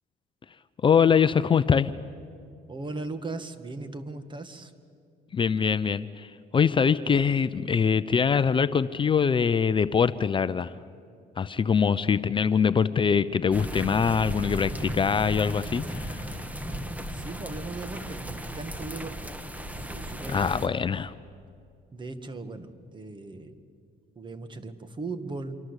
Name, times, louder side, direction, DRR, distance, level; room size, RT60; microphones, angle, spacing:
voice 1, 0.8-1.9 5.3-10.7 11.4-16.3 20.3-21.1, left 6 dB, 30° left, 13 dB, 0.6 m, -23 dB
voice 2, 2.7-4.7 7.1-7.3 16.7-19.3 19.9-20.5 21.9-23.6 24.2-25.6, right 3 dB, 30° right, 11 dB, 1.9 m, -38 dB
sound 1, 13.5-20.7, equal, 10° right, 1.6 m, -36 dB
27.0 x 24.0 x 8.2 m, 2.4 s
cardioid pair, 110°, 17 cm